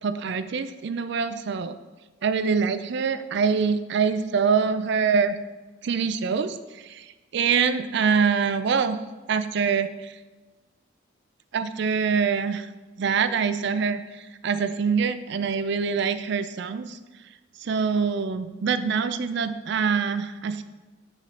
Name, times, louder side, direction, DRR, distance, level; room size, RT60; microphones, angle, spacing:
voice 1, 0.0-1.8 2.2-5.4 5.8-7.1 7.3-9.0 9.3-10.1 11.5-12.7 13.0-17.0 17.6-20.6, right 6 dB, 65° right, 11 dB, 0.4 m, -25 dB
6.1 x 3.8 x 5.8 m, 1.2 s
head